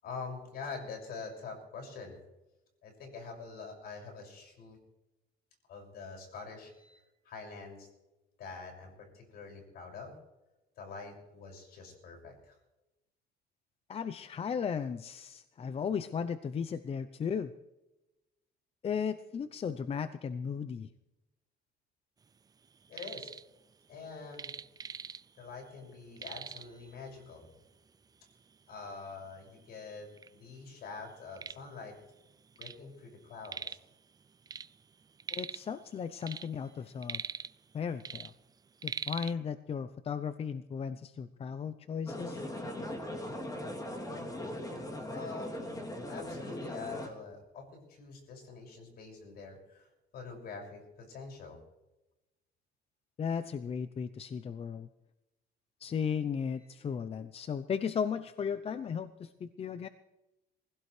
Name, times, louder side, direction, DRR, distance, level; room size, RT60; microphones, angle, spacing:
voice 1, 0.0-2.2 2.8-4.8 5.7-7.9 8.4-10.1 10.8-12.6 22.9-23.3 23.9-24.5 25.4-27.5 28.7-30.1 30.3-31.9 32.6-33.8 36.6-36.7 45.1-45.7 46.1-49.9 50.1-51.6 56.6-56.7, left 4 dB, 65° left, 1 dB, 6.2 m, -45 dB
voice 2, 13.9-17.5 18.8-20.9 35.3-37.2 37.7-38.3 38.8-42.4 53.2-54.9 55.8-59.9, left 6 dB, 35° left, 12 dB, 0.7 m, -35 dB
sound 1, 22.7-23.4 23.7-25.5 25.8-25.9 26.2-26.8 27.6-27.7 28.2-28.3 29.1-29.2 29.4-30.3 30.8-32.8 33.1-33.9 34.2-35.7 36.1-37.7 38.0-39.3, right 6 dB, 25° right, 0.4 m, -42 dB
sound 2, 42.1-47.1, left 1 dB, 20° left, 2.9 m, -39 dB
23.0 x 16.5 x 3.3 m, 0.98 s
cardioid pair, 110°, 17 cm